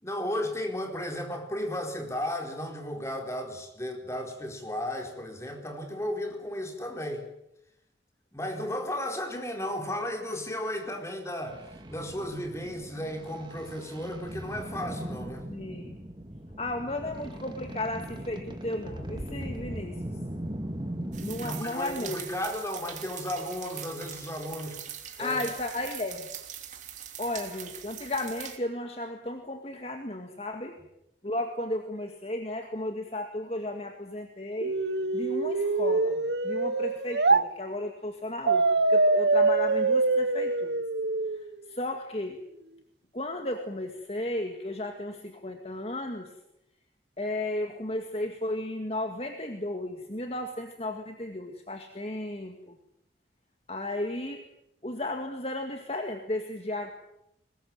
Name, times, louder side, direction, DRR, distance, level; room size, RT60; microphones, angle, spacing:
voice 1, 0.0-7.3 8.3-15.5 21.4-24.8 25.2-25.4, left 1 dB, 15° left, 3 dB, 4.5 m, -34 dB
sound 1, 11.5-21.6, right 1 dB, 25° right, 2.4 m, -39 dB
voice 2, 15.5-16.0 16.6-20.2 21.2-22.2 25.2-26.3 27.2-30.8 31.2-34.7 35.1-40.7 41.7-42.4 43.1-46.3 47.2-52.8 53.7-54.4 54.8-56.9, left 1 dB, 35° left, 5 dB, 2.0 m, -34 dB
sound 2, 21.1-28.6, right 10 dB, 40° right, 2.9 m, -42 dB
sound 3, 34.6-37.4 38.5-41.5, right 3 dB, 70° right, 1.0 m, -24 dB
23.0 x 20.5 x 9.1 m, 0.81 s
head